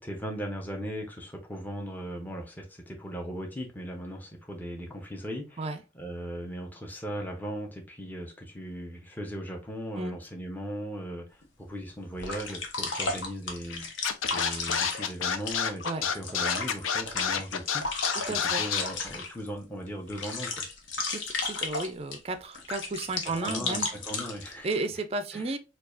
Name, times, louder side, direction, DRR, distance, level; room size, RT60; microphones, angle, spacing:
voice 1, 0.0-13.9 14.3-17.8 18.3-20.6 23.4-24.7 25.3-25.4, equal, 10° left, 0.7 m, -38 dB
sound 1, 11.4-11.5 12.2-19.5 19.9-22.2 22.5-24.7, left 3 dB, 65° left, 0.8 m, -34 dB
Scratching (performance technique), 14.0-18.8, left 7 dB, 85° left, 0.5 m, -28 dB
voice 2, 18.3-18.6 21.1-23.9 24.6-25.6, right 3 dB, 30° right, 0.4 m, -33 dB
4.6 x 2.3 x 2.5 m
head